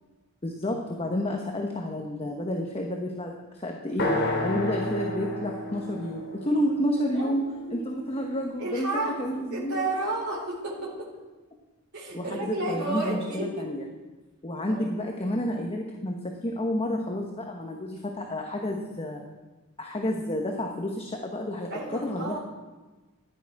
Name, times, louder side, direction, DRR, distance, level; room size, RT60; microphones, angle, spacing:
voice 1, 0.4-9.9 12.1-13.8 14.4-19.2 19.8-22.4, left 1 dB, 25° left, 1 dB, 1.1 m, -30 dB
sound 1, 4.0-7.9, left 1 dB, 60° left, 3.3 m, -31 dB
voice 2, 7.1-7.4 7.7-8.0 8.6-11.1 11.9-13.6 14.6-14.8 21.7-22.4, right 2 dB, 55° right, -4 dB, 4.2 m, -32 dB
15.0 x 11.0 x 4.8 m, 1.2 s
head